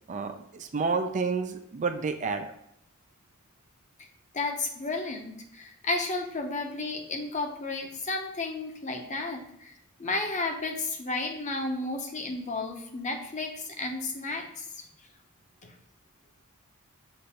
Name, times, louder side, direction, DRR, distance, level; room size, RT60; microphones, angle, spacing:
voice 1, 0.1-2.5, right 4 dB, 35° right, 7 dB, 0.4 m, -30 dB
voice 2, 4.3-9.7 10.0-14.8 15.6-15.7, left 3 dB, 35° left, 3 dB, 0.8 m, -32 dB
6.7 x 2.6 x 5.6 m, 0.76 s
head